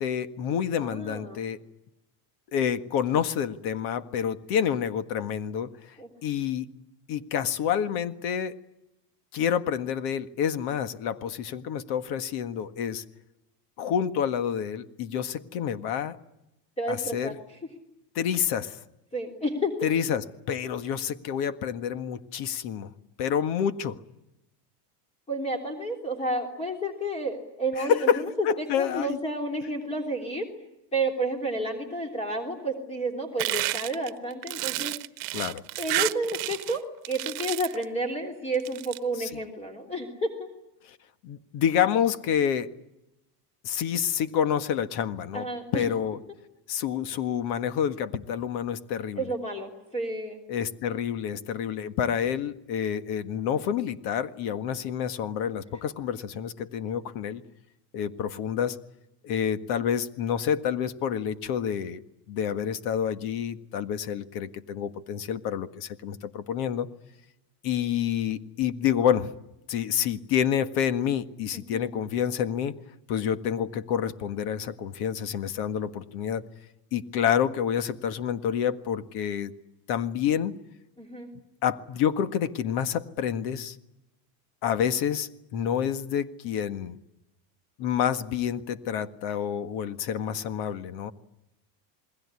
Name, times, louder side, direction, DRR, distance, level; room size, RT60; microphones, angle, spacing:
voice 1, 0.0-1.6 2.5-5.9 6.2-6.7 7.1-8.6 9.3-13.0 13.8-16.2 16.9-17.4 18.2-18.8 19.8-22.9 23.2-24.0 27.8-29.2 35.3-35.6 39.2-39.3 40.9-41.0 41.2-42.7 43.6-45.5 45.7-46.2 46.7-49.2 50.5-57.4 57.9-58.8 59.2-62.0 62.3-66.9 67.6-69.3 69.7-72.7 73.1-76.4 76.9-79.5 79.9-80.5 81.6-83.8 84.6-87.0 87.8-91.1, left 8 dB, 50° left, 11 dB, 1.7 m, -28 dB
voice 2, 0.8-1.4 6.0-6.1 16.8-17.6 19.1-19.9 25.3-30.5 30.9-34.9 35.8-40.5 45.3-45.9 49.1-50.4 71.5-71.9 81.0-81.3, right 1 dB, 15° left, 3 dB, 3.4 m, -31 dB
sound 1, 33.4-36.8 37.0-37.8 38.5-39.0, right 23 dB, 65° right, 1.2 m, -30 dB
28.5 x 21.0 x 9.8 m, 0.90 s
supercardioid pair, 150°, 48 cm